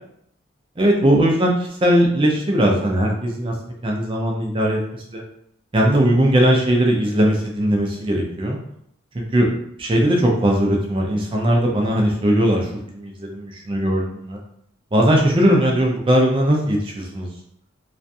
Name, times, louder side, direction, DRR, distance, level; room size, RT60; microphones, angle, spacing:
voice 1, 0.8-3.5 3.8-5.2 5.7-8.6 9.1-9.5 9.8-14.4 14.9-17.3, equal, 25° right, 0 dB, 0.4 m, -19 dB
2.4 x 2.3 x 2.6 m, 0.72 s
head